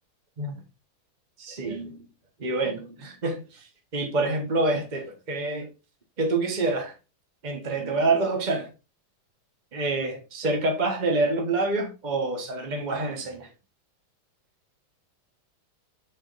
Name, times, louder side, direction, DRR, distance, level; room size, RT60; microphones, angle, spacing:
voice 1, 1.4-2.1 2.4-3.7 3.9-5.7 6.2-6.9 7.4-8.7 9.7-13.5, right 2 dB, 35° right, 0.7 m, -27 dB
7.1 x 4.4 x 3.9 m
omnidirectional pair, 2.3 m